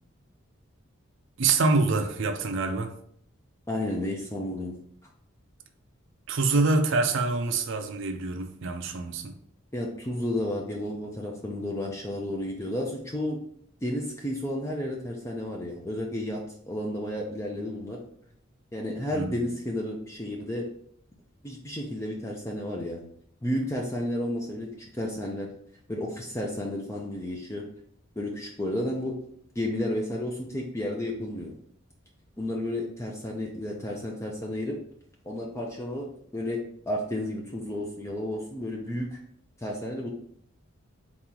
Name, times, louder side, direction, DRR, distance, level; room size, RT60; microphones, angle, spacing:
voice 1, 1.4-2.9 6.3-9.4 19.1-19.4, right 3 dB, 65° right, 0.5 m, -26 dB
voice 2, 3.7-4.7 9.7-13.4 13.8-16.4 16.7-18.0 18.7-20.7 21.4-23.0 23.4-24.7 24.9-25.5 25.9-27.7 28.2-29.2 29.6-31.5 32.4-34.8 35.3-36.6 36.9-39.2 39.6-40.1, left 1 dB, 15° left, 0.5 m, -32 dB
4.1 x 3.0 x 3.7 m
head